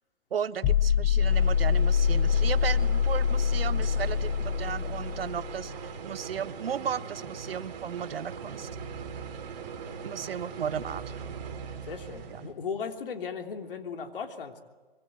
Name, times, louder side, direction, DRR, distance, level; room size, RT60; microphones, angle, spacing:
voice 1, 0.3-8.7 10.0-11.2 12.3-12.4, right 8 dB, 70° right, 15 dB, 1.2 m, -35 dB
sound 1, 0.6-5.7, left 7 dB, 20° left, 0.9 m, -25 dB
sound 2, 1.2-12.5, right 6 dB, 45° right, 4.3 m, -40 dB
voice 2, 11.8-14.6, left 6 dB, 60° left, 5 dB, 3.3 m, -37 dB
25.5 x 23.0 x 8.8 m, 1.3 s
hypercardioid pair, 155°, 30 cm